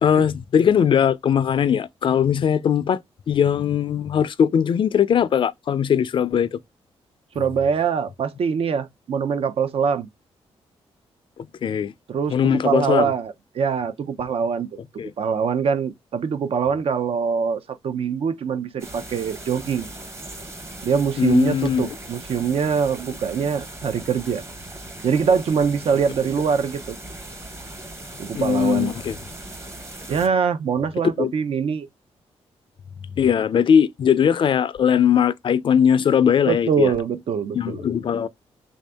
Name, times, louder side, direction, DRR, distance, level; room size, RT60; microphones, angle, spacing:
voice 1, 0.0-3.0 3.3-6.6 11.6-11.9 12.3-13.1 15.0-15.1 21.2-21.9 28.3-29.2 31.2-31.3 33.2-36.9 37.5-38.3, left 8 dB, 50° left, 0.4 m, -20 dB
voice 2, 7.3-10.1 12.1-14.8 15.2-19.9 20.8-24.4 25.0-27.0 28.2-28.9 30.1-31.9 36.5-37.9, right 6 dB, 60° right, 0.5 m, -23 dB
sound 1, 18.8-30.3, right 1 dB, 25° right, 0.9 m, -38 dB
3.4 x 2.6 x 3.3 m
wide cardioid pair, 125°, 11 cm